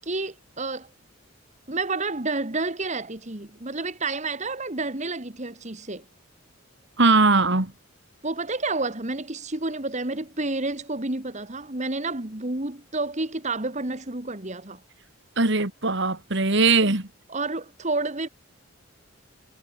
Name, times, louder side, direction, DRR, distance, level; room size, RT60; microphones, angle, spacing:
voice 1, 0.0-0.9 1.7-6.0 8.2-14.8 17.3-18.3, right 3 dB, 35° right, 2.0 m, -30 dB
voice 2, 7.0-7.7 15.4-17.1, right 3 dB, 60° right, 2.6 m, -20 dB
head